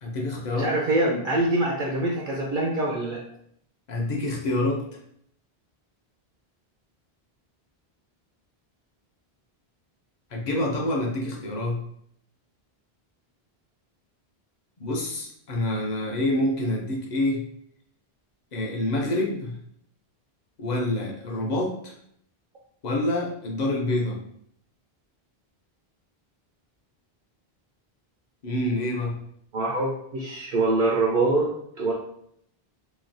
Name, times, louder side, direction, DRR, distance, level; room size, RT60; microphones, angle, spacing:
voice 1, 0.0-0.7 3.9-4.9 10.3-11.8 14.8-17.4 18.5-19.6 20.6-21.9 22.8-24.2 28.4-29.1, left 1 dB, 50° left, -1 dB, 0.6 m, -27 dB
voice 2, 0.6-3.2 29.5-31.5 31.8-31.9, right 2 dB, 60° right, -2 dB, 0.7 m, -24 dB
3.1 x 2.2 x 2.5 m, 0.68 s
omnidirectional pair, 1.1 m